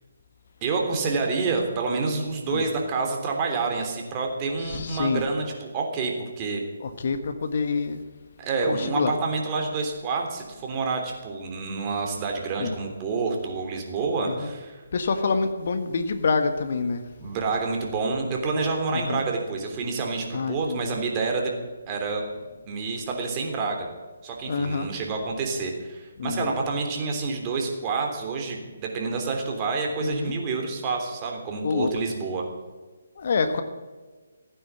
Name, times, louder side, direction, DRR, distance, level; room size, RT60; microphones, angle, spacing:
voice 1, 0.6-6.6 8.4-14.8 17.2-21.5 21.9-22.2 22.7-23.9 24.2-32.4, right 4 dB, 25° right, 1 dB, 3.3 m, -28 dB
voice 2, 4.6-5.2 6.8-8.0 8.7-9.1 12.6-12.7 14.2-14.5 14.9-17.0 18.9-19.2 20.3-20.9 24.5-24.9 26.2-26.5 30.0-30.3 31.6-31.9 33.2-33.6, left 4 dB, 55° left, 8 dB, 1.5 m, -27 dB
16.5 x 9.5 x 8.2 m, 1.3 s
figure-of-eight pair, 145°, 0 cm